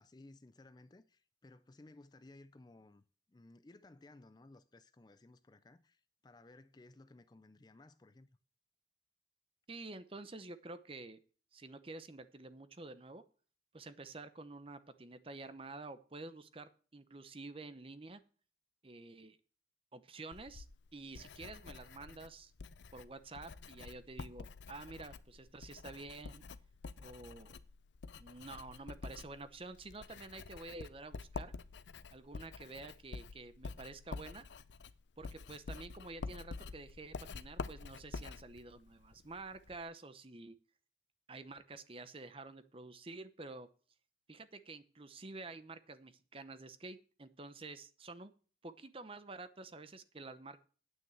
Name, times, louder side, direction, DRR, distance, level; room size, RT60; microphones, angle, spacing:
voice 1, 0.0-3.0 3.3-8.3, left 2 dB, 25° left, 0.4 m, -59 dB
voice 2, 9.7-11.2 11.5-13.2 13.7-18.2 18.8-19.4 19.9-20.7 20.9-22.5 22.9-26.4 27.0-27.6 28.2-31.5 32.1-34.4 35.2-40.6 41.3-43.7 44.3-48.3 48.6-50.6, right 3 dB, 30° right, 0.8 m, -49 dB
Writing, 20.3-39.8, left 4 dB, 80° left, 0.5 m, -48 dB
9.4 x 6.1 x 8.1 m
head